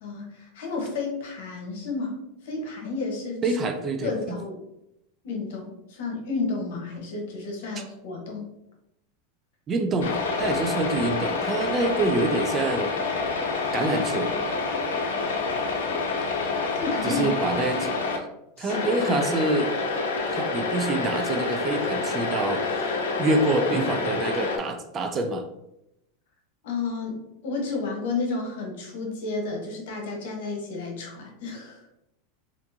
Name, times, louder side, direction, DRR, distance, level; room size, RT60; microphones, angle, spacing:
voice 1, 0.0-3.4 4.0-4.6 5.2-8.4 16.8-17.3 18.6-19.1 26.6-31.8, left 4 dB, 75° left, 1 dB, 1.0 m, -32 dB
voice 2, 3.4-4.4 9.7-13.0 13.7-14.3 17.0-17.9 18.6-19.7 20.3-22.6 23.2-25.4, right 2 dB, 25° right, 6 dB, 0.4 m, -26 dB
sound 1, 10.0-18.2 18.7-24.6, left 4 dB, 90° left, 0.6 m, -27 dB
3.5 x 2.5 x 2.7 m, 0.85 s
supercardioid pair, 145°, 0 cm